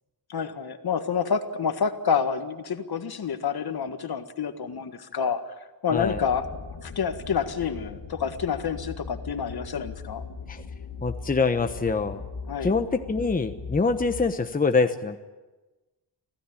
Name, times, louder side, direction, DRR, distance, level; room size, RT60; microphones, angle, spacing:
voice 1, 0.3-5.4 5.8-10.2 12.5-12.7, left 6 dB, 60° left, 8 dB, 1.8 m, -28 dB
sound 1, 5.9-14.3, left 4 dB, 75° left, 2.8 m, -39 dB
voice 2, 5.9-6.2 10.5-10.6 11.0-12.2 12.6-15.2, left 4 dB, 20° left, 7 dB, 1.1 m, -25 dB
25.5 x 16.5 x 10.0 m, 1.2 s
wide cardioid pair, 135°, 42 cm